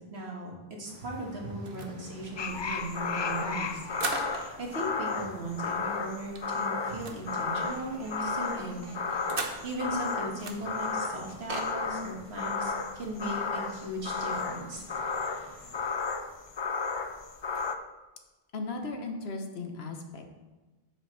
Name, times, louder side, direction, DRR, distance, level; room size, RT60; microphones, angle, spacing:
voice 1, 0.1-0.5 0.8-3.8 4.2-8.9 9.2-15.4, right 1 dB, 90° right, -1 dB, 2.0 m, -38 dB
sound 1, 0.8-15.9, right 1 dB, 30° right, 1.6 m, -54 dB
sound 2, 1.6-4.7 5.0-5.1 5.4-5.5 5.8-9.9 10.4-11.7, right 4 dB, 65° right, 1.1 m, -41 dB
sound 3, 2.4-17.8, left 4 dB, 45° left, 0.3 m, -33 dB
voice 2, 18.5-20.4, left 3 dB, 75° left, 4 dB, 1.3 m, -37 dB
10.0 x 7.2 x 3.3 m, 1.2 s
omnidirectional pair, 1.0 m